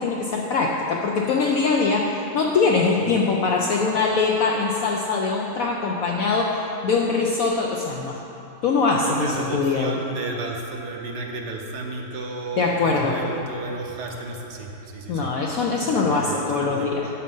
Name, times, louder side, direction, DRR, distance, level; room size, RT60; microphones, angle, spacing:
voice 1, 0.0-2.1 2.3-6.5 6.8-8.2 8.6-9.9 12.6-13.1 15.1-17.1, left 4 dB, 65° left, -1 dB, 0.9 m, -22 dB
voice 2, 9.0-17.0, right 2 dB, 70° right, 1 dB, 1.3 m, -33 dB
8.7 x 6.3 x 5.4 m, 3.0 s
omnidirectional pair, 1.9 m